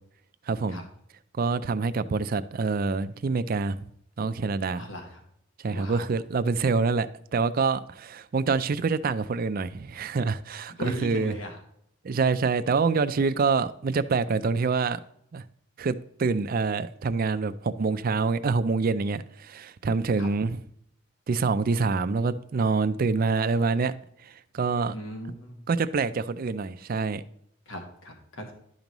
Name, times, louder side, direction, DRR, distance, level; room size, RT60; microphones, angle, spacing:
voice 1, 0.5-0.8 1.3-3.8 4.2-4.8 5.6-11.3 12.0-15.0 15.3-15.4 15.8-20.6 21.3-23.9 24.2-24.9 25.7-27.2, right 4 dB, 45° right, 0.4 m, -26 dB
voice 2, 4.7-5.1 5.7-6.1 10.8-11.6 20.2-20.3 24.9-25.6 27.7-28.5, equal, 75° left, 1.6 m, -37 dB
11.5 x 5.3 x 3.0 m
head